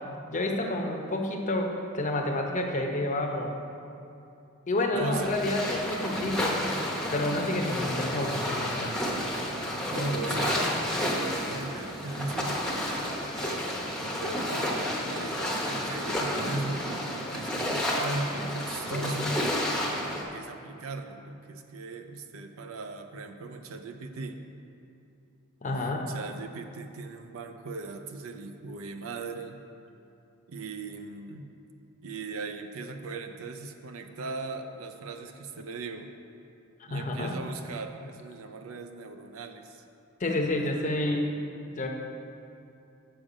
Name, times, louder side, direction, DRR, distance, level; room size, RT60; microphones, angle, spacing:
voice 1, 0.3-3.5 4.7-6.6 7.1-8.9 25.6-26.1 36.8-37.3 40.2-41.4 41.7-41.9, left 1 dB, 35° left, 2 dB, 0.7 m, -29 dB
voice 2, 4.9-5.4 8.9-9.1 9.9-12.7 13.2-19.5 20.3-24.4 25.7-29.6 30.5-31.5 32.0-36.1 36.9-39.8 40.6-40.9, right 3 dB, 70° right, 6 dB, 0.5 m, -38 dB
sound 1, 5.1-20.2, left 1 dB, 5° left, 0.8 m, -31 dB
7.4 x 6.8 x 5.0 m, 2.7 s
head